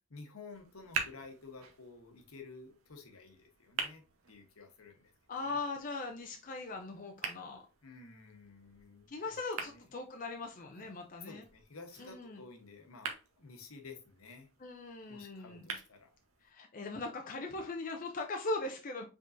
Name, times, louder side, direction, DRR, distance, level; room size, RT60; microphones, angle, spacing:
voice 1, 0.1-5.1 5.5-5.6 7.8-9.4 9.6-9.8 11.2-14.5 15.1-16.1, left 4 dB, 75° left, 5 dB, 1.0 m, -52 dB
sound 1, 0.5-16.5, right 5 dB, 75° right, 0.9 m, -46 dB
voice 2, 5.3-7.6 9.1-11.4 12.0-12.4 14.6-15.6 16.4-19.1, left 3 dB, 40° left, 3 dB, 0.5 m, -40 dB
5.2 x 3.7 x 2.5 m, 0.32 s
head